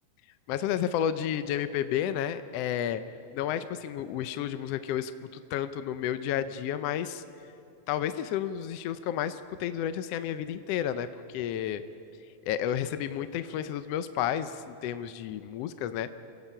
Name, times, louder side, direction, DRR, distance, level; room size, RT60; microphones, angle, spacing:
voice 1, 0.5-3.0 3.3-5.1 5.5-7.2 7.9-11.8 12.4-16.1, left 10 dB, 75° left, 12 dB, 1.5 m, -31 dB
28.0 x 16.5 x 5.6 m, 2.7 s
omnidirectional pair, 3.3 m